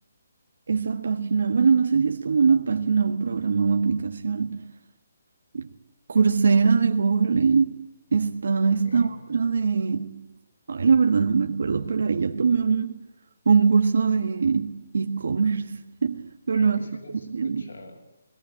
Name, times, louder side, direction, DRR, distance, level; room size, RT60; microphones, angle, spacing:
voice 1, 0.7-4.7 5.5-5.7 6.1-7.8 8.1-10.3 10.7-13.0 13.4-16.8 17.3-17.6, right 5 dB, 65° right, 1.5 m, -22 dB
voice 2, 8.8-9.2 16.5-18.0, left 1 dB, 85° left, 7.6 m, -45 dB
19.0 x 17.5 x 8.9 m
hypercardioid pair, 175°, 0 cm